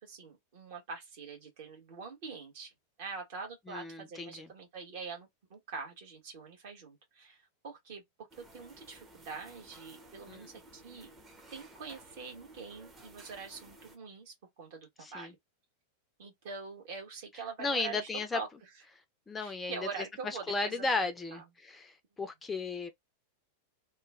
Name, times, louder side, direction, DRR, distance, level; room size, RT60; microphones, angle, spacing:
voice 1, 0.0-2.7 3.0-11.1 11.5-15.4 16.2-18.7 19.4-21.0 21.3-21.4 22.2-22.3, right 5 dB, 50° right, 1.3 m, -44 dB
voice 2, 3.7-4.5 10.3-10.4 15.0-15.3 17.6-18.4 19.3-19.8 20.2-21.9 22.2-22.9, left 3 dB, 15° left, 0.5 m, -34 dB
sound 1, 8.3-14.0, right 1 dB, 20° right, 0.8 m, -56 dB
3.0 x 2.3 x 2.3 m
figure-of-eight pair, 90°, 0 cm